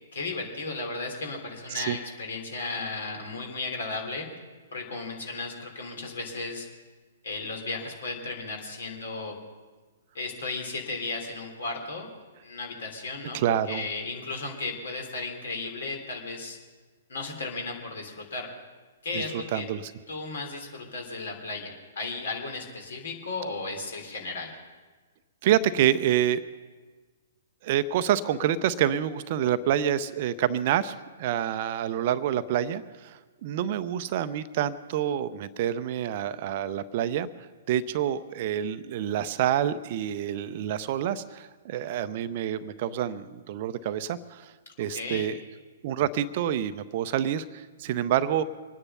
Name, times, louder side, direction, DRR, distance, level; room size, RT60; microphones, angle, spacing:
voice 1, 0.1-4.3 4.7-6.7 7.2-9.3 10.1-12.1 12.4-13.4 13.7-16.6 17.1-18.5 19.0-19.6 20.1-24.6 44.9-45.3, left 3 dB, 60° left, 2 dB, 3.2 m, -35 dB
voice 2, 13.3-13.9 19.1-19.2 19.5-19.9 25.4-26.4 27.6-37.3 37.7-44.5 44.8-45.4 45.8-48.4, right 10 dB, 40° right, 14 dB, 0.6 m, -27 dB
24.5 x 9.9 x 5.5 m, 1.4 s
figure-of-eight pair, 115°, 0 cm